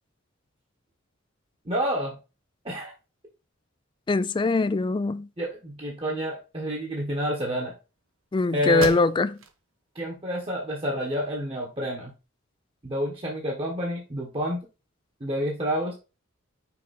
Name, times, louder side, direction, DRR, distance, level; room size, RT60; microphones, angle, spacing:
voice 1, 1.6-2.2 2.6-2.9 5.4-7.7 8.5-9.0 9.9-12.1 12.8-14.7 15.2-15.9, equal, 25° right, 1.3 m, -29 dB
voice 2, 4.1-5.3 8.3-9.3, left 3 dB, 25° left, 0.3 m, -22 dB
sound 1, 8.2-8.3 8.7-9.6 10.1-10.2 10.7-11.6, right 5 dB, 75° right, 1.0 m, -38 dB
5.9 x 4.9 x 4.2 m
head